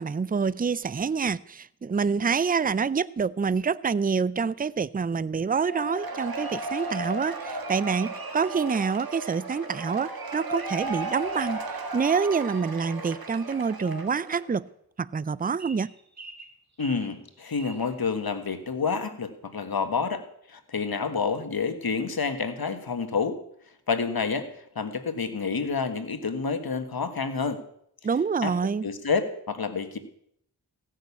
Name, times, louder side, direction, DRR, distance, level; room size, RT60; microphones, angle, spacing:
voice 1, 0.0-11.6 11.9-14.7 15.0-15.9 28.0-28.9, right 5 dB, 25° right, 0.5 m, -27 dB
Cheering / Applause / Crowd, 5.6-14.6, right 2 dB, 65° right, 1.8 m, -35 dB
sound 1, 15.6-17.9, right 3 dB, 45° right, 1.9 m, -45 dB
voice 2, 16.8-20.2 20.5-23.4 23.9-24.5 24.7-27.6 28.4-28.5 28.8-30.0, left 5 dB, 65° left, 1.5 m, -28 dB
15.5 x 6.4 x 8.3 m
cardioid pair, 45°, 38 cm